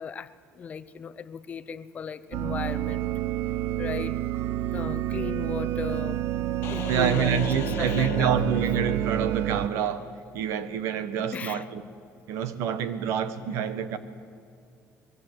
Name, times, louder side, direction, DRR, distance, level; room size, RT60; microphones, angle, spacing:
voice 1, 0.0-3.1 3.8-4.2 4.7-6.2 6.7-7.4 7.8-8.3 11.3-11.6, left 7 dB, 30° left, 0.8 m, -36 dB
sound 1, 2.3-9.7, right 12 dB, 55° right, 0.5 m, -29 dB
sound 2, 6.6-9.3, left 11 dB, 55° left, 1.1 m, -38 dB
voice 2, 6.9-11.8 12.3-14.0, right 8 dB, 70° right, 1.6 m, -27 dB
23.5 x 23.0 x 8.1 m
cardioid pair, 160°, 5 cm